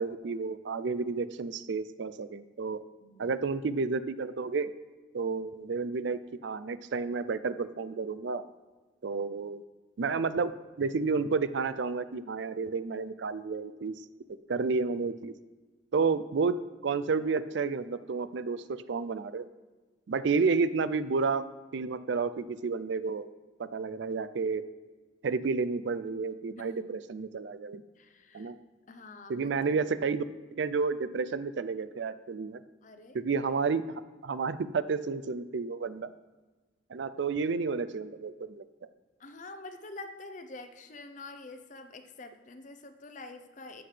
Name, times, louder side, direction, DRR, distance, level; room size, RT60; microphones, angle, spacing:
voice 1, 0.0-2.8 3.2-4.7 5.1-8.4 9.0-9.6 10.0-10.5 10.8-14.0 14.5-15.3 15.9-16.6 16.8-19.5 20.1-21.5 21.7-23.3 23.6-24.6 25.2-27.8 28.3-28.6 29.3-30.2 30.6-32.6 33.1-33.8 34.2-36.1 36.9-38.6, right 4 dB, 65° right, 14 dB, 0.4 m, -31 dB
voice 2, 3.0-3.4 26.6-26.8 28.0-28.5 28.9-29.5 32.8-33.2 39.2-43.8, left 2 dB, 40° left, 8 dB, 0.7 m, -46 dB
14.0 x 7.8 x 3.3 m, 1.3 s
head